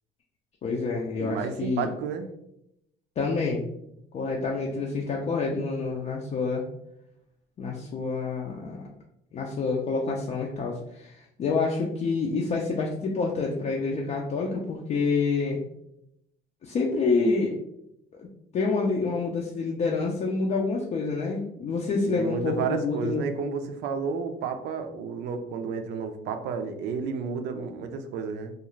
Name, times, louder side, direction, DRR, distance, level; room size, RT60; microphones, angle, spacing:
voice 1, 0.6-1.9 3.2-3.6 4.1-6.6 7.6-8.8 9.3-15.6 16.6-17.5 18.2-18.3 18.5-23.2, left 4 dB, 40° left, -1 dB, 0.4 m, -27 dB
voice 2, 1.2-2.3 22.1-28.5, right 5 dB, 80° right, 7 dB, 0.4 m, -31 dB
2.4 x 2.4 x 3.0 m, 0.79 s
cardioid pair, 110°, 17 cm